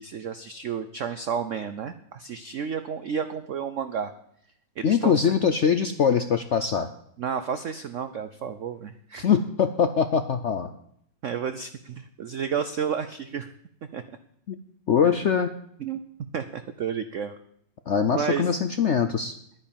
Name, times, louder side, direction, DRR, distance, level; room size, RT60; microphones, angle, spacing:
voice 1, 0.0-4.1 4.8-5.3 7.2-9.3 11.2-13.5 13.9-14.0 15.8-16.0 16.3-17.4 18.1-18.5, right 7 dB, 65° right, 10 dB, 0.7 m, -31 dB
voice 2, 4.8-6.9 9.2-10.7 14.5-14.6 14.9-15.5 17.9-19.3, left 7 dB, 70° left, 9 dB, 0.6 m, -22 dB
11.0 x 9.9 x 7.2 m, 0.72 s
omnidirectional pair, 2.1 m